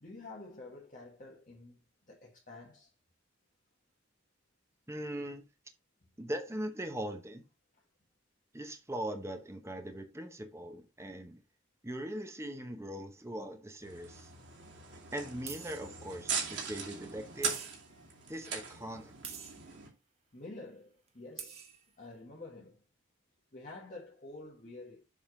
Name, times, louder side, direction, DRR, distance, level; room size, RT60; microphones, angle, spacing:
voice 1, 0.0-2.9 20.3-21.6 22.0-22.8 23.5-25.0, left 2 dB, 40° left, 1.6 m, -49 dB
voice 2, 4.9-5.4 6.2-7.4 8.5-11.4 11.8-14.3 15.1-17.7 18.3-19.2, right 1 dB, 15° right, 0.9 m, -40 dB
sound 1, 13.8-19.9, right 6 dB, 60° right, 2.5 m, -40 dB
sound 2, 14.2-14.3 15.5-15.9 17.4-18.0 19.2-19.7 21.1-21.2 21.4-21.8, right 7 dB, 30° right, 1.3 m, -45 dB
7.3 x 3.7 x 4.8 m
head